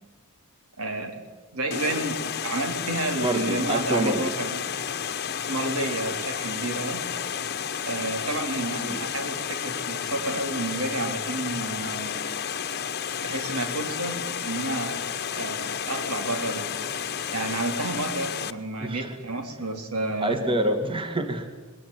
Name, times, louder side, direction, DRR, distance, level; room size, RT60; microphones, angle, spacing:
voice 1, 0.8-1.2 1.5-4.6 5.5-7.1 7.9-12.2 13.2-15.0 15.3-16.9 17.3-20.5, right 2 dB, 80° right, 5 dB, 4.0 m, -30 dB
Water, 1.7-18.5, left 7 dB, 50° left, 1.1 m, -31 dB
voice 2, 3.2-4.3 8.8-9.1 18.8-19.1 20.2-21.5, right 1 dB, 25° right, 6 dB, 2.3 m, -26 dB
26.0 x 21.0 x 9.4 m, 1.3 s
head